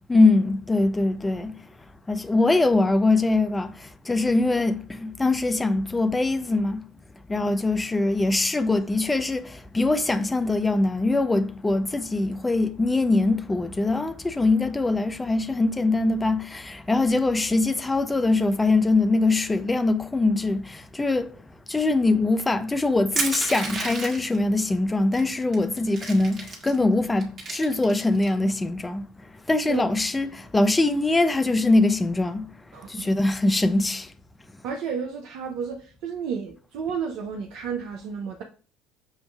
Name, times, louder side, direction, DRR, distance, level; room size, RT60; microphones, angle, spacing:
voice 1, 0.1-1.5 2.1-6.8 7.3-21.3 21.7-29.1 29.5-32.5 32.9-34.1, left 2 dB, 15° left, 0.5 m, -22 dB
Crushing, 23.2-24.4 25.1-25.2 25.5-26.8 27.2-28.3, right 3 dB, 40° right, 1.5 m, -31 dB
voice 2, 32.7-33.0 34.6-38.4, right 6 dB, 60° right, 0.5 m, -32 dB
6.3 x 2.5 x 2.3 m
figure-of-eight pair, 60°, 0 cm